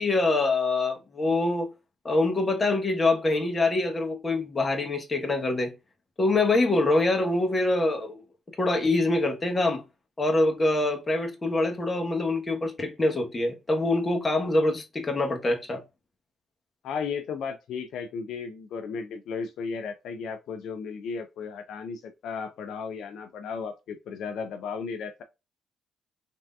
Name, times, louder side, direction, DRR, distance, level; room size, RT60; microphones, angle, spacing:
voice 1, 0.0-1.7 2.0-5.7 6.2-8.1 8.6-9.8 10.2-15.8, left 2 dB, 30° left, 0.9 m, -25 dB
voice 2, 16.8-25.2, left 5 dB, 75° left, 0.3 m, -35 dB
3.3 x 2.6 x 2.2 m
supercardioid pair, 65°, 0 cm